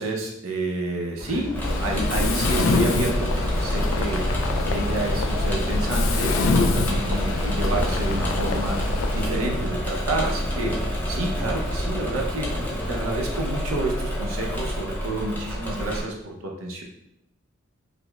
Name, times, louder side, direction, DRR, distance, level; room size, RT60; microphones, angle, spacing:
voice 1, 0.0-4.3 4.7-8.8 9.1-10.7 11.1-12.5 12.9-16.8, right 2 dB, 80° right, 0 dB, 0.7 m, -29 dB
sound 1, 1.2-13.0, left 1 dB, 45° left, 0.8 m, -33 dB
Engine / Mechanisms, 1.5-16.0, equal, 10° left, 0.6 m, -29 dB
Mechanisms, 1.6-9.2, left 3 dB, 65° left, 0.3 m, -25 dB
4.9 x 2.0 x 2.3 m, 0.82 s
head